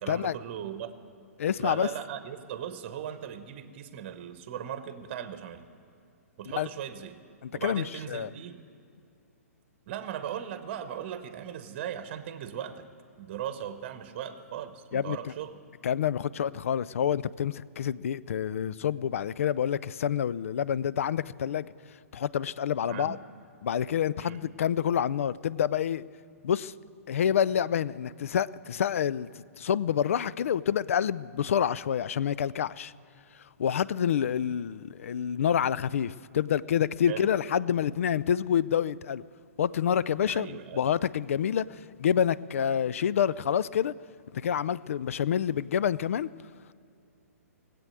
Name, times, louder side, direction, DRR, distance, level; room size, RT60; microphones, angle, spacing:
voice 1, 0.0-0.9 1.6-5.6 6.4-7.2 7.5-8.6 9.9-12.8 13.2-15.6 22.9-23.2 24.2-24.5 37.1-37.3 40.3-40.9, right 9 dB, 40° right, 11 dB, 1.0 m, -38 dB
voice 2, 1.4-1.9 6.5-6.7 7.4-8.3 14.9-15.3 15.8-21.7 22.1-23.2 23.6-26.0 26.4-26.7 27.1-29.3 29.6-32.9 33.6-39.2 39.6-43.9 44.3-46.3, left 9 dB, 60° left, 19 dB, 0.4 m, -28 dB
18.5 x 8.4 x 7.7 m, 2.5 s
figure-of-eight pair, 120°, 8 cm